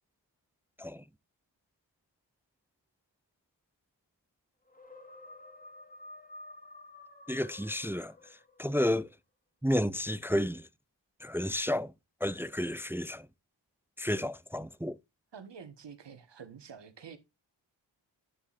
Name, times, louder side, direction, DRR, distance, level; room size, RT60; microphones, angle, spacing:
sound 1, 4.7-8.8, left 2 dB, 20° left, 1.5 m, -51 dB
voice 1, 7.3-8.1 8.6-9.1 9.6-10.7 11.2-11.9 12.2-13.3 14.0-15.0, left 1 dB, 5° right, 0.3 m, -31 dB
voice 2, 15.3-17.2, right 6 dB, 65° right, 1.4 m, -48 dB
9.1 x 7.2 x 2.5 m
cardioid pair, 40°, 46 cm